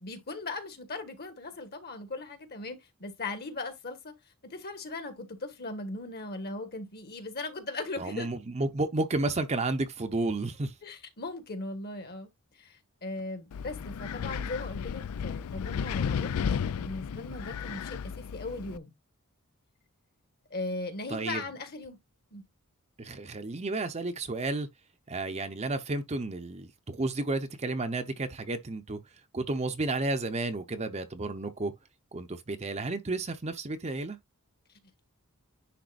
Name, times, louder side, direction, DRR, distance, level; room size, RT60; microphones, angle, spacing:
voice 1, 0.0-4.1 4.4-8.3 10.8-12.3 12.6-16.4 16.7-18.9 20.5-22.0 22.3-22.4, left 2 dB, 45° left, 1.5 m, -38 dB
voice 2, 8.0-10.7 21.1-21.4 23.0-24.7 25.1-29.0 29.3-31.7 32.1-34.2, right 2 dB, 30° right, 0.7 m, -32 dB
Wind, 13.5-18.8, left 7 dB, 85° left, 0.4 m, -33 dB
10.0 x 3.8 x 2.5 m
head